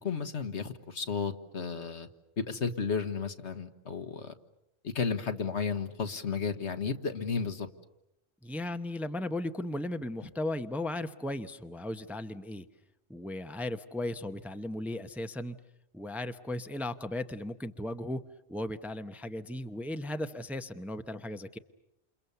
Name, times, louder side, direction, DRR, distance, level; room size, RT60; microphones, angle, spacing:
voice 1, 0.0-2.1 2.4-4.3 4.8-7.7, left 5 dB, 75° left, 8 dB, 1.8 m, -33 dB
voice 2, 8.4-12.7 13.1-15.6 15.9-18.2 18.5-21.6, left 1 dB, ahead, 9 dB, 0.8 m, -36 dB
29.0 x 28.5 x 6.9 m, 0.83 s
omnidirectional pair, 1.2 m